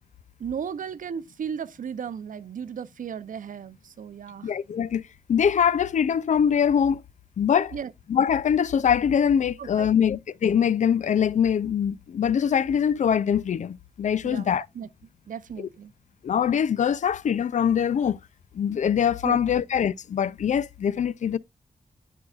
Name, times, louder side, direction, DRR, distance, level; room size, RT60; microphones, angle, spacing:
voice 1, 0.4-4.5 7.7-7.9 9.6-10.1 14.2-14.5 14.7-14.9 15.3-15.9 19.2-19.6, right 7 dB, 85° right, 0.6 m, -35 dB
voice 2, 4.4-5.0 5.3-7.0 7.4-7.7 8.1-14.7 16.2-18.2 18.5-21.4, left 8 dB, 65° left, 0.4 m, -23 dB
13.5 x 4.7 x 2.3 m
wide cardioid pair, 175°, 13 cm